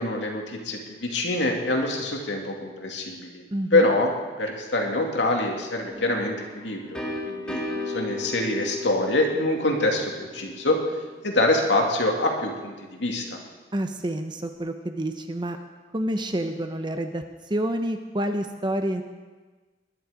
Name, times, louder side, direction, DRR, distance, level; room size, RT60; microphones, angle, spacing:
voice 1, 0.0-3.4 3.7-4.1 4.4-10.8 11.2-13.2, left 2 dB, 75° left, 1 dB, 2.4 m, -25 dB
voice 2, 3.5-3.9 13.7-15.6 15.9-19.0, right 1 dB, 25° right, 7 dB, 0.7 m, -28 dB
sound 1, 5.9-11.6, left 2 dB, 5° left, 1.9 m, -36 dB
20.0 x 11.0 x 5.1 m, 1.3 s
head